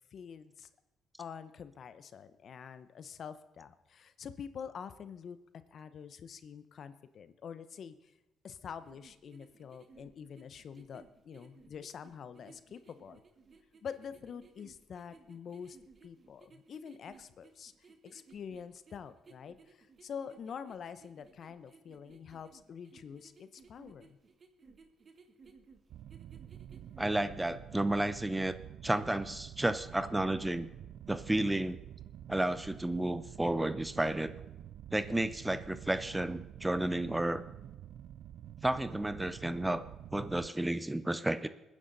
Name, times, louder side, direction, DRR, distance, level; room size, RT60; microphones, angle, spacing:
voice 1, 0.1-0.7 1.2-5.4 5.7-8.1 8.4-13.2 13.8-15.8 16.0-17.7 18.0-24.2, left 7 dB, 60° left, 12 dB, 0.9 m, -46 dB
sound 1, 8.6-27.2, right 4 dB, 40° right, 1.5 m, -60 dB
sound 2, 25.9-40.5, right 11 dB, 75° right, 0.4 m, -48 dB
voice 2, 27.0-28.6 28.8-30.7 31.1-31.8 32.3-34.3 34.9-37.4 38.6-39.8 40.1-41.5, right 1 dB, 10° right, 13 dB, 0.7 m, -32 dB
21.5 x 9.9 x 4.1 m, 0.97 s
cardioid pair, 90°, 0 cm